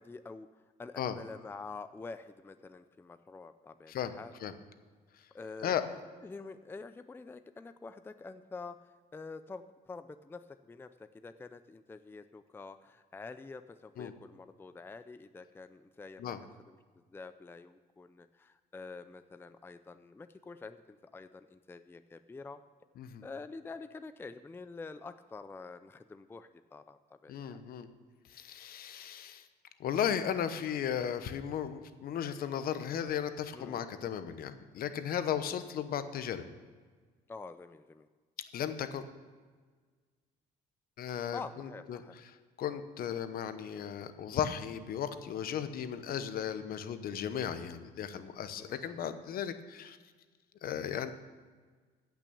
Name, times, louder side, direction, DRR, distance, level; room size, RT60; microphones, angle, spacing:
voice 1, 0.0-4.3 5.3-5.7 6.2-16.3 16.7-22.6 23.2-27.6 33.5-33.9 37.3-38.1 41.3-42.2 48.6-49.1, left 4 dB, 15° left, 11 dB, 0.4 m, -47 dB
voice 2, 27.3-27.9 28.3-29.5 29.8-36.4 38.5-39.1 41.0-42.0 42.6-50.0 50.6-51.1, left 9 dB, 60° left, 11 dB, 1.0 m, -35 dB
15.0 x 6.1 x 7.0 m, 1.5 s
cardioid pair, 110°, 17 cm